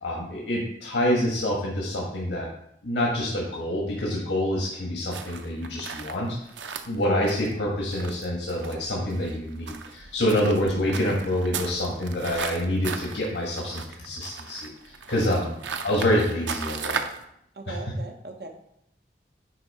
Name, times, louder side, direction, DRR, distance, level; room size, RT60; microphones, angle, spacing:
voice 1, 0.0-2.5 2.8-6.4 6.9-14.7 15.1-15.5 15.8-17.1 17.7-17.8, left 1 dB, 80° left, -2 dB, 1.5 m, -26 dB
sound 1, 5.1-17.2, right 6 dB, 90° right, 0.6 m, -37 dB
voice 2, 17.6-18.5, right 3 dB, 60° right, 3 dB, 1.0 m, -39 dB
9.6 x 3.4 x 4.3 m, 0.73 s
head